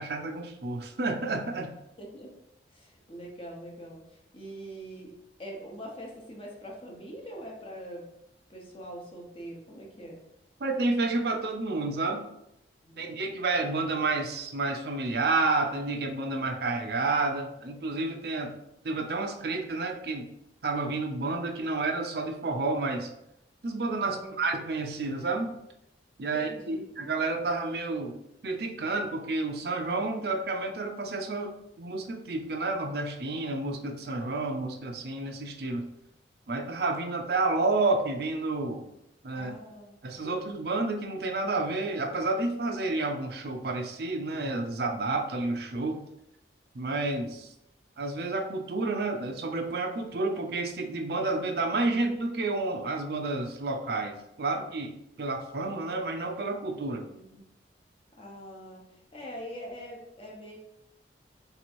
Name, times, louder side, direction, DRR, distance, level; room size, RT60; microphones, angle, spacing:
voice 1, 0.0-1.7 10.6-12.3 13.0-18.5 18.8-20.3 20.6-23.1 23.6-25.5 26.2-28.2 28.4-35.9 36.5-38.9 39.2-39.6 40.0-46.0 46.7-47.5 48.0-57.1, right 3 dB, 60° right, 3 dB, 0.5 m, -30 dB
voice 2, 2.0-2.4 2.7-5.1 5.4-8.1 8.5-10.2 12.8-13.1 24.0-24.4 26.3-26.8 39.3-40.4 57.1-57.4 58.2-60.6, equal, 30° left, -1 dB, 0.9 m, -43 dB
3.4 x 3.0 x 4.3 m, 0.83 s
head